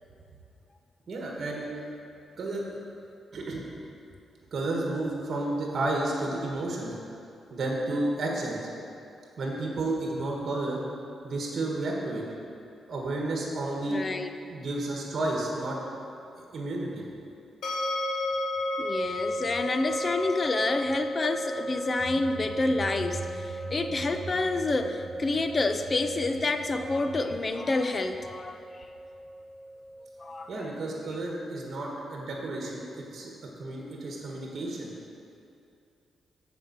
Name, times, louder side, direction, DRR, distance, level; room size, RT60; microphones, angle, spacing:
voice 1, 1.1-1.7 2.4-2.6 3.3-3.6 4.5-7.0 7.5-8.6 9.4-10.8 11.2-12.2 12.9-14.0 14.5-15.8 16.4-17.0 30.5-34.9, right 2 dB, 55° right, -2 dB, 1.7 m, -31 dB
voice 2, 13.8-14.3 18.8-28.6 30.2-30.7, left 3 dB, 30° left, 8 dB, 0.5 m, -28 dB
sound 1, 17.6-30.6, equal, 75° left, 1.1 m, -35 dB
sound 2, 22.0-27.5, right 4 dB, 70° right, 0.6 m, -42 dB
7.3 x 5.0 x 7.1 m, 2.7 s
cardioid pair, 105°, 0 cm